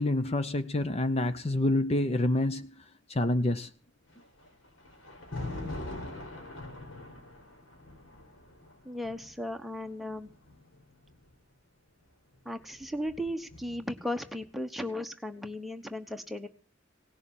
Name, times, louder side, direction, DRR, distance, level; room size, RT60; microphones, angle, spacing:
voice 1, 0.0-2.7 3.1-3.7, left 1 dB, 30° left, 0.7 m, -27 dB
Thunder, 4.1-11.3 12.3-14.1, left 2 dB, 80° left, 5.0 m, -43 dB
voice 2, 8.8-10.3 12.4-16.5, left 1 dB, ahead, 1.2 m, -36 dB
18.0 x 6.9 x 8.9 m
head